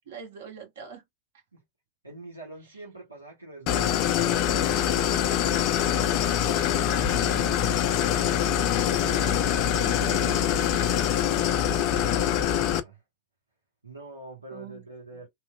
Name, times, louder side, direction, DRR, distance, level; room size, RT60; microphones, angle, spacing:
voice 1, 0.1-1.0 6.6-9.4 9.8-10.7 14.5-14.8 15.1-15.2, right 8 dB, 55° right, 1.2 m, -43 dB
voice 2, 2.0-5.5 11.8-13.0 13.8-15.3, right 3 dB, 85° right, 0.9 m, -45 dB
Idling, 3.7-12.8, left 9 dB, 40° left, 0.4 m, -24 dB
3.0 x 2.1 x 2.2 m
figure-of-eight pair, 90°, 0 cm